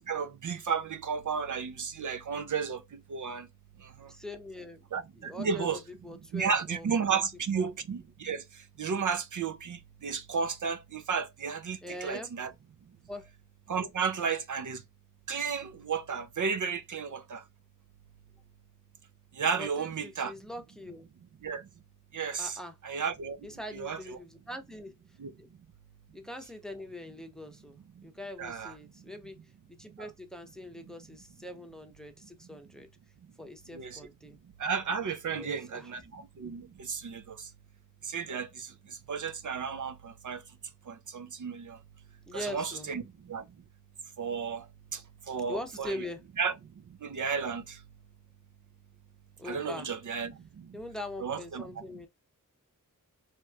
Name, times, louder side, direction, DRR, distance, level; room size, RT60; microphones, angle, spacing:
voice 1, 0.1-3.5 3.8-4.1 4.9-5.8 6.3-12.5 13.7-14.8 15.3-17.4 19.3-20.3 21.4-21.7 22.1-22.6 22.8-23.4 23.7-24.2 25.2-25.3 28.4-28.7 30.0-30.1 33.7-34.0 34.6-37.5 38.0-40.4 40.9-41.8 42.3-43.4 44.2-44.7 44.9-46.0 46.4-46.5 47.0-47.8 49.4-50.8 51.2-51.7, right 6 dB, 60° right, 0.5 m, -33 dB
voice 2, 4.1-4.9 5.1-7.2 7.5-7.6 11.8-12.3 13.1-13.3 19.6-21.1 22.4-22.8 23.4-24.9 25.4-25.5 26.1-29.4 29.7-32.9 33.4-34.4 35.3-35.9 42.3-42.9 45.5-46.2 49.4-49.9 50.7-52.1, left 1 dB, ahead, 0.7 m, -42 dB
3.1 x 2.9 x 2.3 m
wide cardioid pair, 80°, 34 cm